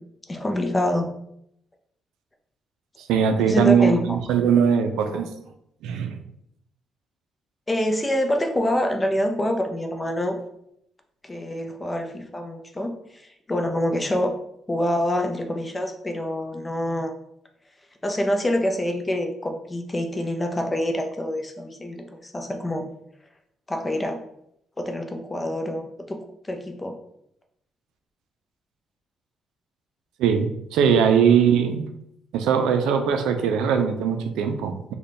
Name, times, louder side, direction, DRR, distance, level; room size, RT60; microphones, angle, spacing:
voice 1, 0.3-1.1 3.4-4.2 5.1-5.2 7.7-10.4 11.2-13.2 13.5-14.3 14.7-17.1 18.0-22.8 23.7-24.2 24.8-26.2 26.4-27.0, left 1 dB, 20° left, 4 dB, 0.5 m, -26 dB
voice 2, 3.0-5.3 5.8-6.2 30.2-31.9 32.3-34.9, right 7 dB, 90° right, 7 dB, 0.4 m, -20 dB
3.2 x 2.2 x 4.0 m, 0.76 s
cardioid pair, 90°, 0 cm